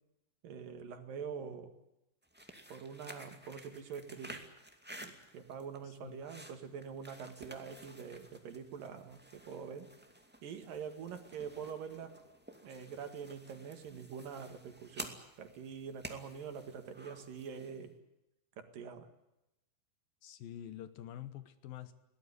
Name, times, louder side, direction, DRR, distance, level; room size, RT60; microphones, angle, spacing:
voice 1, 0.4-1.7 2.7-4.5 5.0-9.9 10.4-12.2 12.6-18.0 18.6-19.1, right 6 dB, 65° right, 7 dB, 3.4 m, -45 dB
sound 1, 2.2-17.8, right 1 dB, 5° right, 1.2 m, -52 dB
voice 2, 20.2-21.9, left 11 dB, 70° left, 12 dB, 2.8 m, -46 dB
22.0 x 17.5 x 9.8 m, 0.90 s
omnidirectional pair, 4.5 m